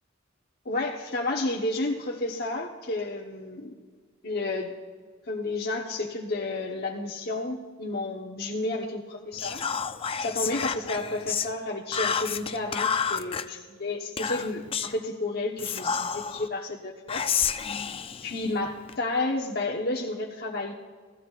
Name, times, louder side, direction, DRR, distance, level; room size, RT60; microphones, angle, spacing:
voice 1, 0.6-3.7 4.2-4.7 5.2-9.6 10.2-17.2 18.2-20.7, left 2 dB, 50° left, -1 dB, 1.1 m, -31 dB
Whispering, 9.4-11.5 11.9-13.4 14.2-15.0 15.6-16.5 17.1-19.0, left 7 dB, 30° left, 0.4 m, -30 dB
28.0 x 16.5 x 2.5 m, 1.5 s
head